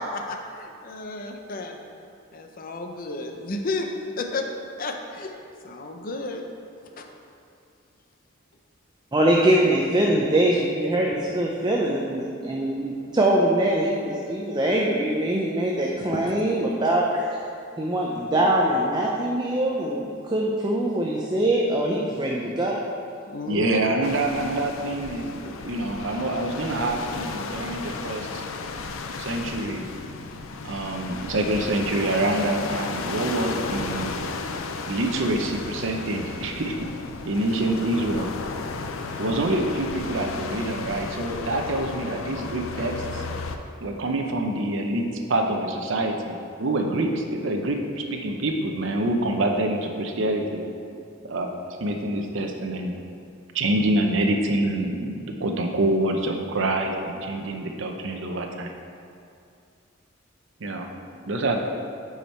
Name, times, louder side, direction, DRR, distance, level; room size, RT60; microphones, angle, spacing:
voice 1, 0.0-1.8 2.3-3.9 4.2-4.5 4.8-5.3 5.6-6.4 7.0-7.1 23.3-23.8, left 2 dB, 45° left, 4 dB, 0.6 m, -32 dB
voice 2, 9.1-17.4 17.8-22.8, right 1 dB, 20° right, -2 dB, 0.6 m, -23 dB
voice 3, 23.5-28.4 29.2-29.9 30.6-34.1 34.9-36.8 37.3-38.3 39.2-43.2 43.8-50.6 51.2-52.9 53.5-58.7 60.6-60.9 61.3-61.6, right 1 dB, 70° right, 3 dB, 0.7 m, -26 dB
sound 1, 24.0-43.6, left 4 dB, 85° left, 0.5 m, -34 dB
8.2 x 5.0 x 4.4 m, 2.4 s
head